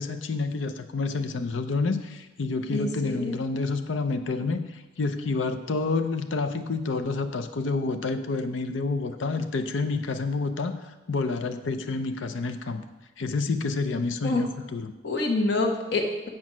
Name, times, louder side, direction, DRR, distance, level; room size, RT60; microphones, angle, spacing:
voice 1, 0.0-10.8 11.1-12.8 13.2-14.9, left 3 dB, 75° left, 8 dB, 0.5 m, -28 dB
voice 2, 2.7-3.4 14.2-14.4 15.0-16.3, left 2 dB, 60° left, 2 dB, 1.3 m, -26 dB
7.5 x 6.2 x 6.1 m, 1.1 s
head